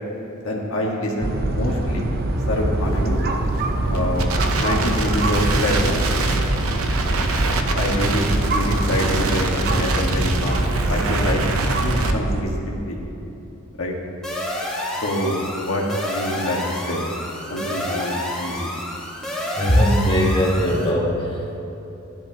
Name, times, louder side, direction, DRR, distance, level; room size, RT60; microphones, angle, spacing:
voice 1, 0.4-2.1 2.5-3.2 3.9-6.1 7.8-11.4 11.8-13.0 13.8-13.9 15.0-17.1 17.5-18.7, left 1 dB, 70° left, -2 dB, 1.6 m, -26 dB
sound 1, 1.2-12.4, right 1 dB, 45° right, 0.7 m, -23 dB
Crackle, 2.9-12.1, right 3 dB, 80° right, 0.8 m, -27 dB
sound 2, 14.2-20.9, left 1 dB, ahead, 1.8 m, -29 dB
voice 2, 19.5-21.6, equal, 25° left, -3 dB, 1.5 m, -19 dB
15.5 x 10.5 x 2.9 m, 3.0 s
head